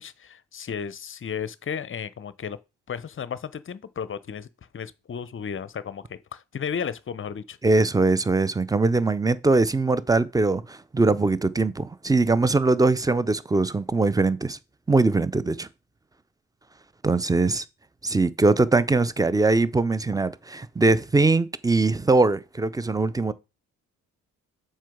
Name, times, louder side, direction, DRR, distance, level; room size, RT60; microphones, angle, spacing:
voice 1, 0.0-2.6 2.9-4.5 4.7-7.6, left 7 dB, 30° left, 0.7 m, -34 dB
voice 2, 7.6-14.6 14.9-15.7 17.0-17.6 18.0-23.3, right 3 dB, 10° right, 0.5 m, -21 dB
7.4 x 5.7 x 3.6 m
figure-of-eight pair, 40°, 42 cm